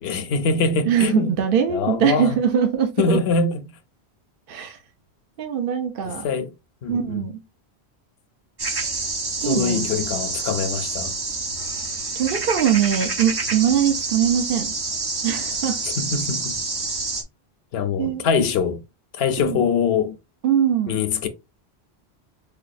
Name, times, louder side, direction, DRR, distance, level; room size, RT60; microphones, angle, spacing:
voice 1, 0.0-1.3 1.7-2.4 3.0-3.6 6.1-6.5 6.8-7.2 9.4-11.1 16.0-16.6 17.7-18.8 19.1-20.2 20.9-21.3, left 5 dB, 70° left, 0.8 m, -23 dB
voice 2, 0.9-3.2 4.5-4.8 5.4-6.3 6.9-7.4 9.4-9.9 12.2-14.7 15.2-15.8 18.0-18.2 19.4-19.6 20.4-21.0, right 9 dB, 60° right, 0.8 m, -22 dB
sound 1, 8.6-17.2, right 3 dB, 35° right, 0.4 m, -28 dB
5.0 x 2.3 x 2.4 m
omnidirectional pair, 1.1 m